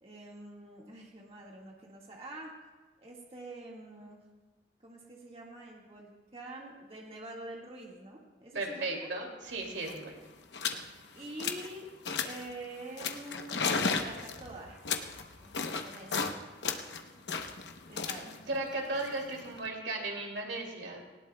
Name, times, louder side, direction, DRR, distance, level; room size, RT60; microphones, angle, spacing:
voice 1, 0.0-2.5 3.0-4.2 4.8-9.1 11.2-11.9 12.2-14.8 15.4-16.4 17.9-18.4, right 1 dB, 30° right, -2 dB, 1.8 m, -46 dB
voice 2, 8.5-10.2 18.5-21.0, right 2 dB, 90° right, 1 dB, 2.6 m, -36 dB
sound 1, 9.5-9.6 9.8-10.0 10.5-10.8 11.2-11.7 12.0-12.5 13.0-16.3 16.6-19.7, left 5 dB, 80° left, 0.9 m, -34 dB
19.0 x 17.5 x 2.3 m, 1.2 s
head